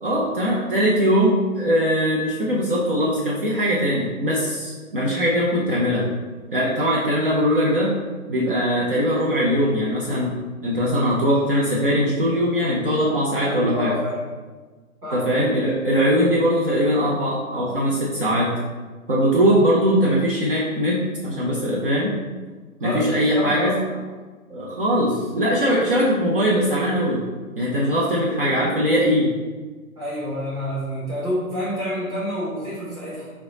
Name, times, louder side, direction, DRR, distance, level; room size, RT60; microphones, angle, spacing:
voice 1, 0.0-6.1 6.5-7.9 8.3-10.3 10.6-13.9 15.1-18.5 19.1-22.2 22.8-23.7 24.5-27.2 27.6-29.3, equal, 40° right, -5 dB, 0.7 m, -21 dB
voice 2, 13.4-14.2 15.0-15.3 22.8-24.0 30.0-33.3, equal, 10° right, -10 dB, 1.0 m, -28 dB
5.0 x 2.3 x 3.9 m, 1.3 s
figure-of-eight pair, 130°, 43 cm